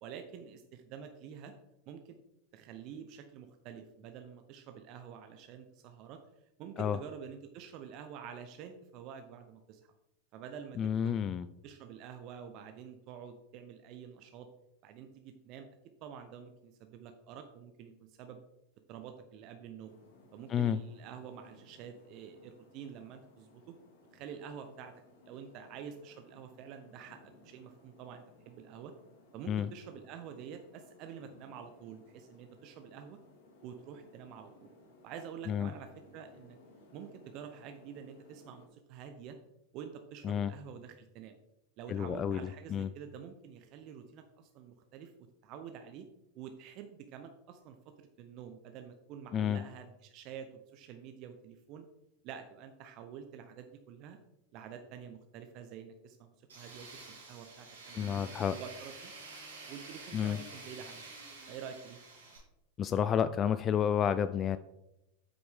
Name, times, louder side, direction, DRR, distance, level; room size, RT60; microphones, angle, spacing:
voice 1, 0.0-1.5 1.9-2.2 2.5-6.2 6.6-9.8 10.3-11.2 11.6-14.5 14.8-15.7 16.0-18.4 18.9-19.9 20.3-23.7 24.1-24.9 25.3-28.9 29.3-33.2 33.6-34.7 35.0-36.6 36.9-39.4 39.7-41.4 41.8-45.1 45.4-46.1 46.3-51.9 52.2-54.2 54.5-59.1 59.7-61.1 61.5-62.0, right 7 dB, 50° right, 7 dB, 0.7 m, -48 dB
voice 2, 10.8-11.5 20.5-20.8 29.5-29.7 35.5-35.7 40.2-40.5 41.9-42.4 42.7-42.9 49.3-49.6 57.9-58.5 60.1-60.4 62.8-64.6, left 8 dB, 35° left, 13 dB, 0.3 m, -30 dB
sound 1, 19.9-38.7, left 2 dB, 65° left, 2.1 m, -61 dB
Tools, 56.5-62.4, right 3 dB, 85° right, 3.1 m, -49 dB
8.1 x 6.1 x 3.6 m, 0.87 s
hypercardioid pair, 90°, 0 cm